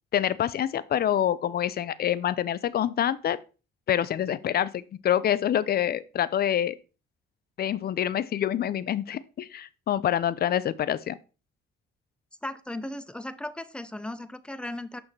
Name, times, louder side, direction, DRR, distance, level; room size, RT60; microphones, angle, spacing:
voice 1, 0.1-3.4 3.9-6.8 7.6-11.2, left 10 dB, 50° left, 0.5 m, -26 dB
voice 2, 12.4-15.0, left 1 dB, 5° left, 0.6 m, -36 dB
6.2 x 6.0 x 3.2 m
cardioid pair, 90°, 20 cm